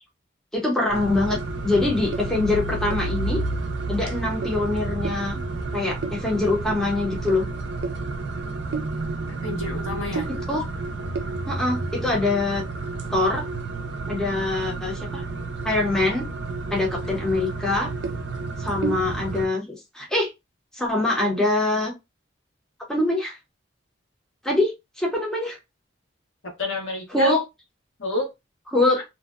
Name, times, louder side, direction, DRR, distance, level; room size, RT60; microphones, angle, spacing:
voice 1, 0.5-3.4 3.9-5.4 5.7-7.4 10.5-10.6 11.5-12.6 13.1-13.5 14.1-15.2 15.6-16.3 16.7-17.9 18.6-19.7 19.9-20.3 20.7-21.9 22.9-23.4 24.4-24.7 25.0-25.6 27.1-27.4 28.7-29.0, left 2 dB, 5° left, -3 dB, 0.7 m, -24 dB
sound 1, 0.9-19.5, right 3 dB, 60° right, 0.4 m, -30 dB
voice 2, 9.4-10.3 17.0-17.1 26.6-27.3 28.0-28.3 28.9-29.0, left 2 dB, 85° left, 0 dB, 1.2 m, -29 dB
2.6 x 2.1 x 2.3 m, 0.22 s
head